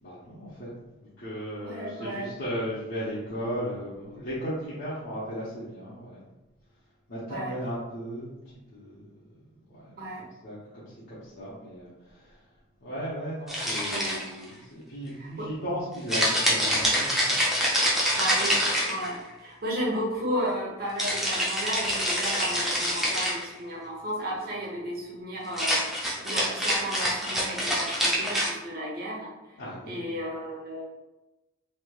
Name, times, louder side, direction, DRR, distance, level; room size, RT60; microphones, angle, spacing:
voice 1, 0.0-0.7 1.2-6.2 7.1-8.3 8.7-9.2 9.7-9.9 10.4-12.4 12.8-18.1 29.6-30.2, equal, 50° left, -10 dB, 0.7 m, -36 dB
voice 2, 1.6-2.3 7.3-7.5 10.0-10.3 13.9-14.2 15.2-15.5 18.1-18.6 18.9-25.8 26.2-29.3 29.9-30.9, equal, 45° right, -2 dB, 0.7 m, -33 dB
sound 1, 13.5-14.4 16.1-19.3 21.0-23.5 25.5-28.5, equal, ahead, 0.4 m, -26 dB
3.1 x 2.7 x 2.2 m, 1.0 s
head